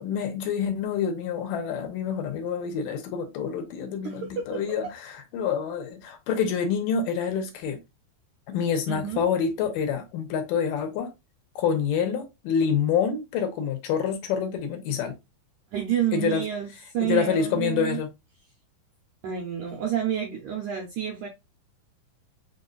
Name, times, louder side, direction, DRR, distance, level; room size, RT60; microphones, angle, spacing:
voice 1, 0.0-7.8 8.5-11.1 11.6-15.2 16.1-16.4 17.0-18.1, left 7 dB, 75° left, 2.2 m, -27 dB
voice 2, 4.0-4.8 8.9-9.2 15.7-16.7 16.9-18.0 19.2-21.3, right 10 dB, 75° right, 1.8 m, -29 dB
7.2 x 2.6 x 2.2 m
omnidirectional pair, 4.4 m